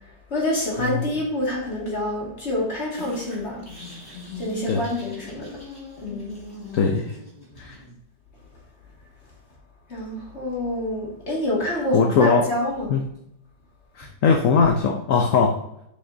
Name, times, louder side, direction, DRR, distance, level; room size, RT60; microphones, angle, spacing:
voice 1, 0.3-3.7 4.4-5.5 6.0-6.4 9.9-12.9, left 1 dB, 35° left, -4 dB, 2.5 m, -27 dB
sound 1, 3.0-8.0, left 2 dB, 10° left, 2.6 m, -40 dB
voice 2, 6.7-7.1 7.6-7.8 11.9-12.5 12.9-13.0 13.9-15.6, left 5 dB, 60° left, 3 dB, 0.9 m, -20 dB
7.7 x 6.7 x 2.7 m, 0.79 s
omnidirectional pair, 2.0 m